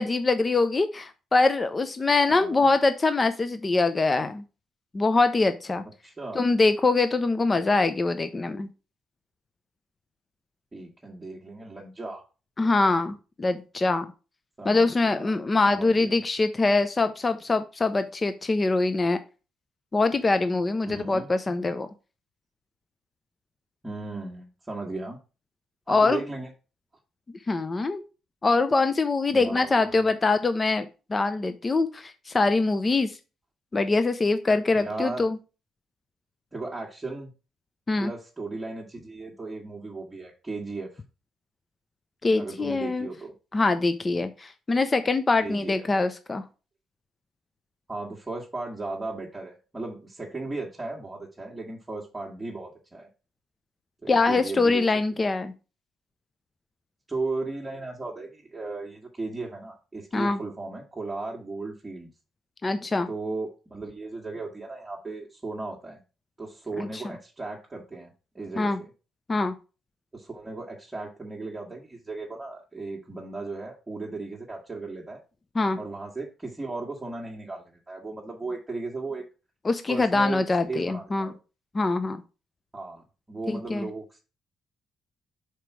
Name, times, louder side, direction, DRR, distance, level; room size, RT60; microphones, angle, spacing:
voice 1, 0.0-4.4 4.9-5.8 6.4-8.7 12.6-14.1 14.6-19.2 19.9-21.9 25.9-26.2 27.5-28.0 28.4-33.1 33.7-35.4 37.9-38.1 42.2-43.1 43.5-46.4 54.1-55.5 60.1-60.4 62.6-63.1 66.8-67.0 68.6-68.8 69.3-69.5 75.6-75.8 79.6-81.3 81.7-82.2 83.5-83.9, left 3 dB, 30° left, 10 dB, 0.6 m, -24 dB
voice 2, 2.3-2.7 6.0-6.5 10.7-12.2 14.6-15.3 15.7-16.1 20.8-21.3 23.8-25.2 25.9-26.5 29.3-30.1 34.7-35.3 36.5-37.3 38.0-41.0 42.4-43.3 45.4-45.8 47.9-53.1 54.0-54.8 57.1-62.1 63.1-66.0 66.4-68.9 70.1-75.2 75.8-79.2 79.9-81.3 82.7-84.2, right 3 dB, 15° right, -3 dB, 1.6 m, -36 dB
5.1 x 4.5 x 6.0 m, 0.32 s
cardioid pair, 90°, 0 cm